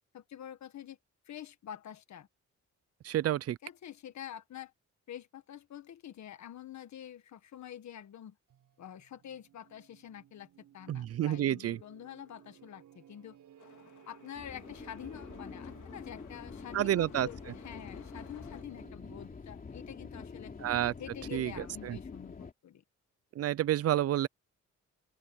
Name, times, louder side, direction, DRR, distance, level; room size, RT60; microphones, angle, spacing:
voice 1, 0.1-1.0 1.3-2.3 3.6-4.7 5.1-8.4 8.8-10.5 10.7-13.4 14.0-20.6 21.0-22.8, left 10 dB, 70° left, 1.6 m, -47 dB
voice 2, 3.0-3.6 10.9-11.8 16.7-17.3 20.6-20.9 21.3-21.5 21.8-22.0 23.4-24.3, right 12 dB, 55° right, 0.4 m, -29 dB
sound 1, 8.5-19.9, right 10 dB, 85° right, 6.7 m, -59 dB
sound 2, 13.6-18.6, left 10 dB, 90° left, 3.6 m, -58 dB
sound 3, 14.3-22.5, left 5 dB, 30° left, 3.1 m, -46 dB
open air
wide cardioid pair, 165°, 30 cm